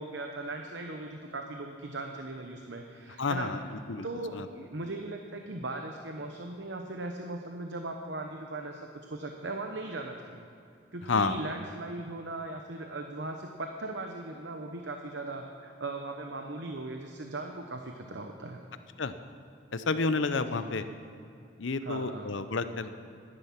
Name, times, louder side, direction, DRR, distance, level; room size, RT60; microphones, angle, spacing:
voice 1, 0.0-3.5 4.0-8.8 9.1-10.5 10.9-18.6 20.5-20.7 21.8-22.3, right 2 dB, 65° right, 4 dB, 0.9 m, -38 dB
voice 2, 3.2-3.6 3.9-4.1 4.3-4.5 11.1-11.4 19.0-19.1 19.7-20.9 21.6-22.9, left 4 dB, 75° left, 11 dB, 0.7 m, -30 dB
16.0 x 11.0 x 5.9 m, 2.7 s
head